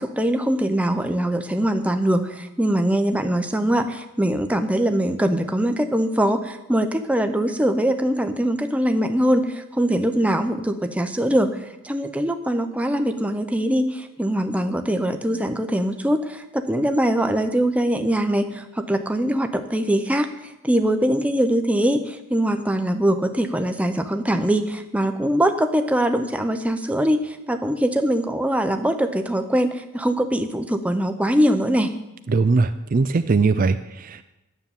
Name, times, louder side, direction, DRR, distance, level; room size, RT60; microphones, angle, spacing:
voice 1, 0.0-11.6 11.8-20.3 20.6-31.9, right 1 dB, 5° right, 6 dB, 0.7 m, -22 dB
voice 2, 32.3-34.2, right 4 dB, 40° right, 10 dB, 0.4 m, -20 dB
9.6 x 7.0 x 9.1 m, 0.93 s
head